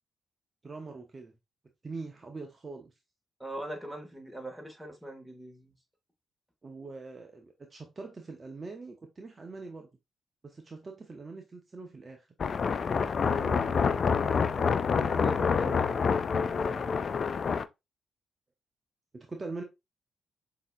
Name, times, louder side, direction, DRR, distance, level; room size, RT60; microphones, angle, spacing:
voice 1, 0.6-1.3 1.8-2.9 6.6-9.9 10.4-12.3 13.2-16.9 19.1-19.6, right 3 dB, 40° right, 0.7 m, -43 dB
voice 2, 3.4-5.7, right 1 dB, 5° right, 1.9 m, -41 dB
sound 1, 12.4-17.6, left 6 dB, 50° left, 0.3 m, -27 dB
5.2 x 2.8 x 2.5 m
hypercardioid pair, 45°, 0 cm